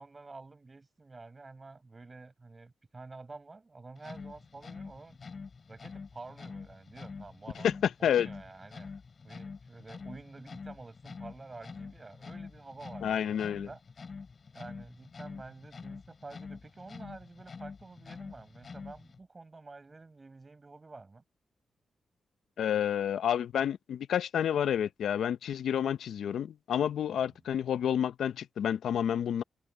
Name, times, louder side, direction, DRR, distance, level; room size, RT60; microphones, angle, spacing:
voice 1, 0.0-5.2 5.7-7.7 8.0-8.9 9.2-13.8 14.5-21.2 27.1-27.3, right 3 dB, 25° right, 4.8 m, -49 dB
sound 1, 4.0-19.2, left 5 dB, 40° left, 4.8 m, -46 dB
voice 2, 7.6-8.3 13.0-13.7 22.6-29.4, left 9 dB, 85° left, 0.6 m, -29 dB
wide cardioid pair, 125°, 0 cm